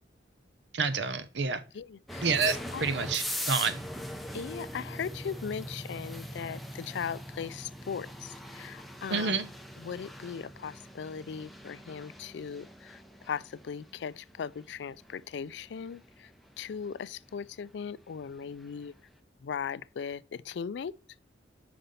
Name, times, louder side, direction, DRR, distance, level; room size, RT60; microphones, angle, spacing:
voice 1, 0.7-1.6 2.2-3.8 9.1-9.5, right 4 dB, 75° right, 0.8 m, -29 dB
voice 2, 1.7-2.3 2.7-2.8 4.3-9.4 9.8-13.0 13.3-16.3 16.6-18.9 19.4-20.9, left 7 dB, 70° left, 0.3 m, -38 dB
sound 1, 2.1-18.9, equal, ahead, 0.6 m, -42 dB
5.6 x 5.2 x 5.3 m
head